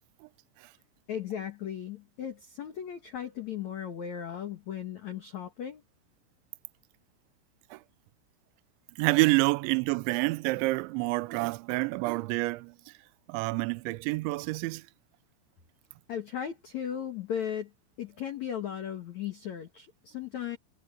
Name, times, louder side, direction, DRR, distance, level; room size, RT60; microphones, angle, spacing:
voice 1, 1.1-5.8 16.1-17.7 18.0-20.6, left 9 dB, 80° left, 1.6 m, -36 dB
voice 2, 9.0-12.7 13.3-14.8, right 23 dB, 85° right, 2.8 m, -28 dB
omnidirectional pair, 5.9 m